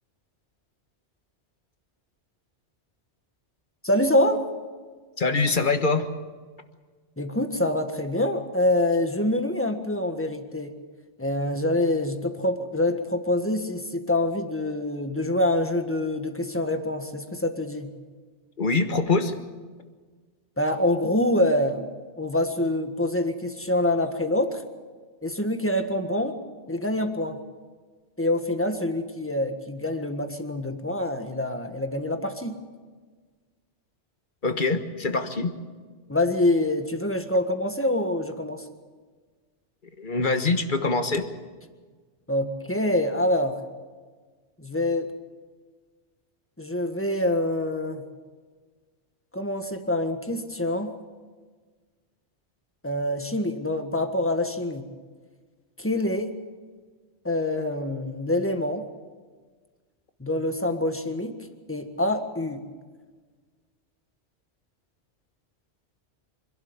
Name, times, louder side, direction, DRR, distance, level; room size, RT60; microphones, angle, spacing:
voice 1, 3.8-4.4 7.2-10.7 11.2-17.9 20.6-21.9 22.2-24.6 25.2-26.4 26.7-27.4 28.2-32.5 36.1-38.6 42.3-43.6 44.6-45.1 46.6-48.0 49.3-50.9 52.8-54.9 55.8-56.4 57.2-58.8 60.2-62.6, left 1 dB, 10° left, 6 dB, 1.6 m, -25 dB
voice 2, 5.2-6.1 18.6-19.3 34.4-35.5 40.0-41.2, left 3 dB, 45° left, 8 dB, 1.5 m, -24 dB
26.0 x 12.0 x 9.6 m, 1.4 s
omnidirectional pair, 1.2 m